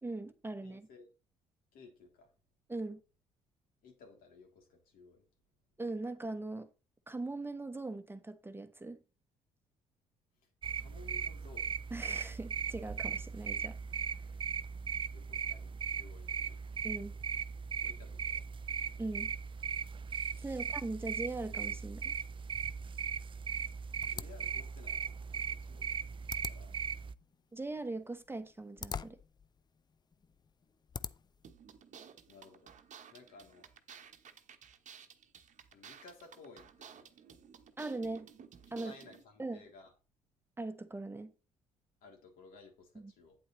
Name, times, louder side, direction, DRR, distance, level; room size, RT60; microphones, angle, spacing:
voice 1, 0.0-0.9 2.7-3.0 5.8-6.7 7.1-9.0 11.9-14.2 16.8-17.1 19.0-19.3 20.4-22.1 27.5-29.2 37.8-38.3 38.7-38.9 39.4-39.6 40.6-41.3 42.9-43.1, right 2 dB, 15° right, 1.1 m, -40 dB
voice 2, 0.6-1.1 1.7-2.3 3.8-5.2 10.7-11.7 15.1-16.6 17.8-18.5 24.1-25.9 26.3-26.8 32.3-32.7 33.1-33.7 35.7-37.1 38.7-39.9 42.0-43.4, left 3 dB, 75° left, 3.0 m, -57 dB
sound 1, 10.6-27.1, right 7 dB, 35° right, 0.4 m, -38 dB
sound 2, 24.0-31.5, left 6 dB, 30° left, 0.4 m, -47 dB
sound 3, 31.4-39.2, right 7 dB, 55° right, 1.0 m, -55 dB
8.8 x 8.3 x 3.1 m
supercardioid pair, 60°, 15 cm